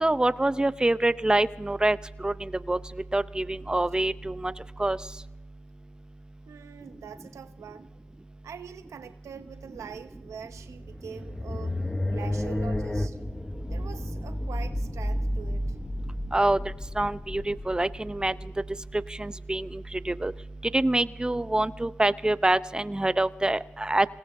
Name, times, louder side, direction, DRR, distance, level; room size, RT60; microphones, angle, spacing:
voice 1, 0.0-2.8 3.1-4.5 4.8-5.0 16.3-16.6 17.0-18.3 19.2-20.3 20.7-24.1, right 2 dB, 15° right, 14 dB, 0.7 m, -25 dB
voice 2, 6.5-7.9 8.4-11.8 12.1-13.2 13.7-15.8, right 7 dB, 90° right, 9 dB, 0.8 m, -43 dB
sound 1, 10.6-18.9, left 1 dB, 15° left, 0.9 m, -32 dB
27.5 x 18.0 x 2.7 m, 0.93 s
cardioid pair, 65°, 5 cm